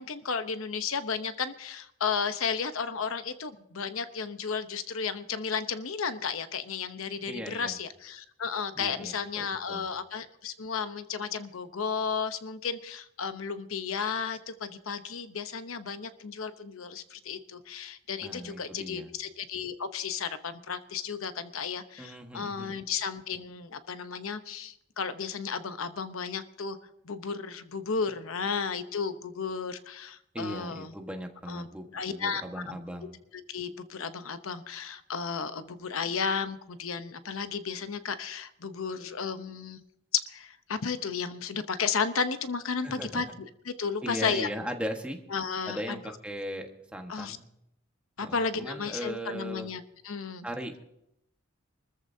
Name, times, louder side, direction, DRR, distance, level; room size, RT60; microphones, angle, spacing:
voice 1, 0.0-26.8 27.0-30.9 31.5-31.7 31.9-32.8 33.5-39.8 40.1-43.3 43.6-44.5 45.3-46.0 47.1-47.4 48.2-50.4, left 5 dB, 80° left, 10 dB, 0.9 m, -33 dB
voice 2, 7.3-7.8 8.7-9.9 18.2-19.1 22.0-22.8 30.3-33.2 42.8-43.2 44.0-45.2 45.7-47.4 48.2-49.7 50.4-50.8, equal, 5° right, 3 dB, 1.4 m, -38 dB
25.0 x 14.0 x 2.7 m, 0.79 s
head